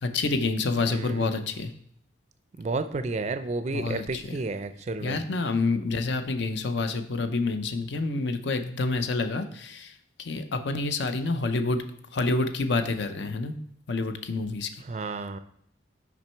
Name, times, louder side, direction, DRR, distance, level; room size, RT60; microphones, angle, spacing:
voice 1, 0.0-1.7 3.7-4.4 5.0-11.8 12.1-13.5 13.9-14.7, left 3 dB, 65° left, 8 dB, 0.6 m, -28 dB
voice 2, 0.9-1.4 2.6-5.2 14.8-15.4, right 3 dB, 35° right, 10 dB, 0.4 m, -31 dB
5.9 x 5.3 x 4.4 m, 0.70 s
head